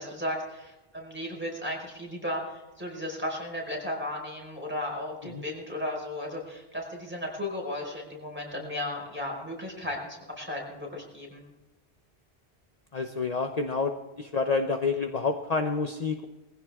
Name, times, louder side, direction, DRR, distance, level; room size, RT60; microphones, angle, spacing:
voice 1, 0.0-11.4, left 1 dB, 10° right, -1 dB, 5.0 m, -35 dB
voice 2, 12.9-16.3, left 4 dB, 40° left, 5 dB, 0.9 m, -28 dB
20.5 x 15.5 x 3.6 m, 1.1 s
omnidirectional pair, 1.0 m